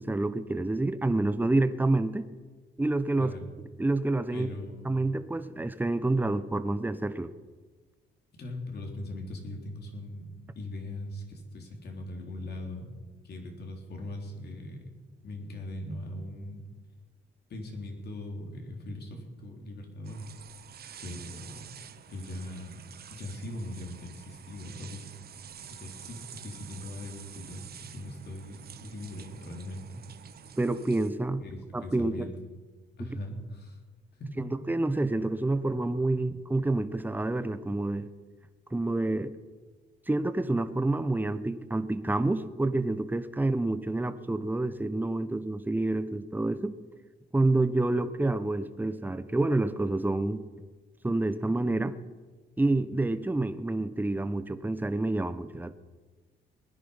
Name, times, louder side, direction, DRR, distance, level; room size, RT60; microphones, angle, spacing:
voice 1, 0.0-2.3 2.8-3.3 3.8-4.5 4.8-7.3 30.6-31.4 31.7-32.3 33.0-33.1 34.4-38.1 38.7-39.3 40.1-46.8 47.3-50.4 51.0-51.9 52.6-55.7, right 2 dB, 10° right, 12 dB, 0.9 m, -28 dB
voice 2, 3.2-3.5 4.3-4.9 8.3-12.9 13.2-15.0 15.2-16.6 17.5-20.2 21.0-21.7 22.1-25.1 25.6-30.0 31.4-32.3 33.0-33.8 34.2-34.4, left 1 dB, 55° left, 2 dB, 3.5 m, -40 dB
sound 1, 20.0-31.1, right 8 dB, 50° right, 0.9 m, -48 dB
20.0 x 10.5 x 5.7 m, 1.3 s
cardioid pair, 90°, 20 cm